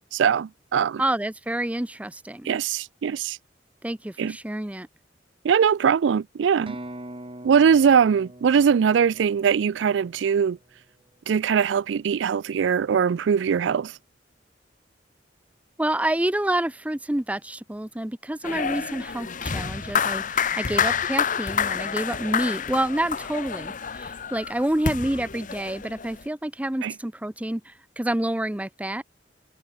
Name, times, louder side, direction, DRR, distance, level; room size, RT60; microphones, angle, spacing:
voice 1, 0.1-1.0 2.5-3.4 4.2-4.4 5.4-6.8 7.4-10.6 11.3-13.9 26.8-26.9, right 7 dB, 85° right, 0.4 m, -21 dB
voice 2, 1.0-2.5 3.8-4.9 15.8-29.0, right 1 dB, 10° right, 0.5 m, -28 dB
sound 1, 6.7-10.4, right 1 dB, 30° right, 4.8 m, -42 dB
sound 2, 18.4-26.2, left 7 dB, 45° left, 1.0 m, -28 dB
head